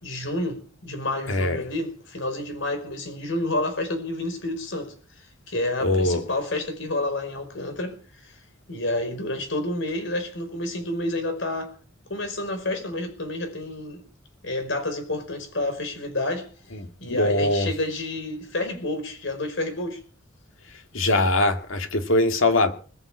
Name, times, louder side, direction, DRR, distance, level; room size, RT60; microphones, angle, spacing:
voice 1, 0.0-4.9 5.5-8.4 8.7-11.7 12.1-14.0 14.4-16.5 17.0-20.0, left 2 dB, 65° left, 4.9 m, -29 dB
voice 2, 1.3-1.6 5.8-6.2 17.1-17.7 20.9-22.7, left 2 dB, 85° left, 2.2 m, -21 dB
21.5 x 7.2 x 8.5 m
head